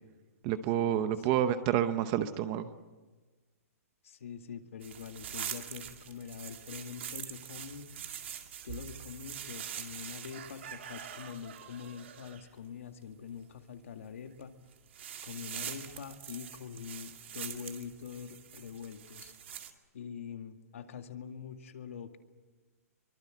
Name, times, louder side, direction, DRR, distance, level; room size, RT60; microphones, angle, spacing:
voice 1, 0.4-2.7, right 10 dB, 20° right, 11 dB, 0.8 m, -29 dB
voice 2, 4.0-7.9 8.6-14.5 15.2-19.3 19.9-22.2, left 7 dB, 60° left, 6 dB, 2.2 m, -44 dB
sound 1, 4.8-12.5 14.2-14.4 14.7-19.7, right 9 dB, 50° right, 2.3 m, -44 dB
25.0 x 24.0 x 7.9 m, 1.3 s
hypercardioid pair, 180°, 8 cm